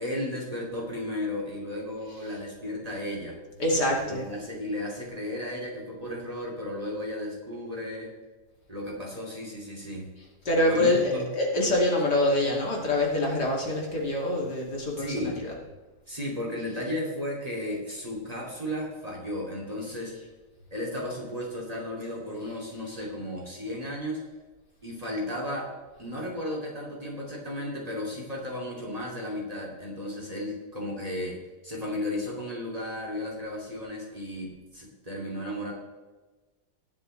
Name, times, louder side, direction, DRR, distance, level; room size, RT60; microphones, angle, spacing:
voice 1, 0.0-3.4 4.0-8.1 8.7-10.1 10.7-11.3 15.0-15.4 16.1-20.1 20.7-24.2 24.8-25.7 26.0-35.7, left 1 dB, 20° right, -2 dB, 2.8 m, -34 dB
voice 2, 3.6-4.3 10.2-15.6, left 1 dB, 70° left, -2 dB, 3.3 m, -26 dB
20.0 x 7.4 x 3.3 m, 1.2 s
omnidirectional pair, 1.8 m